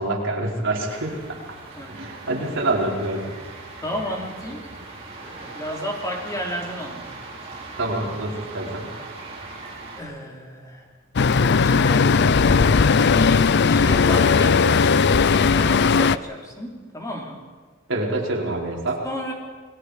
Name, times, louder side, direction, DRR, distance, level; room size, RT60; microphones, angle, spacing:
voice 1, 0.0-1.4 1.9-3.2 7.8-8.9 17.9-19.0, right 2 dB, 65° right, -2 dB, 4.6 m, -26 dB
sound 1, 0.9-10.0, right 3 dB, 30° right, 5.0 m, -39 dB
voice 2, 3.8-4.9 5.2-7.2 9.9-10.8 11.6-12.2 13.0-17.4 19.0-19.3, equal, 15° left, 0 dB, 3.6 m, -32 dB
Traffic noise roadway noise, 11.2-16.2, left 5 dB, 55° left, 0.5 m, -17 dB
29.5 x 21.0 x 5.0 m, 1.4 s
head